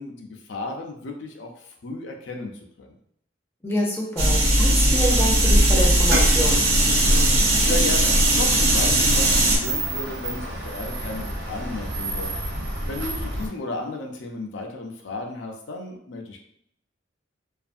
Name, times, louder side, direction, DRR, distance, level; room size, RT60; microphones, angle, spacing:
voice 1, 0.0-2.5 2.8-2.9 7.6-12.3 12.9-16.4, left 2 dB, 75° left, 2 dB, 0.5 m, -34 dB
voice 2, 3.6-6.7, equal, 10° left, -3 dB, 0.5 m, -27 dB
sound 1, 4.2-9.6, right 1 dB, 55° right, 0.6 m, -18 dB
sound 2, 6.2-13.5, right 1 dB, 80° right, 0.9 m, -32 dB
2.5 x 2.5 x 2.5 m, 0.71 s
head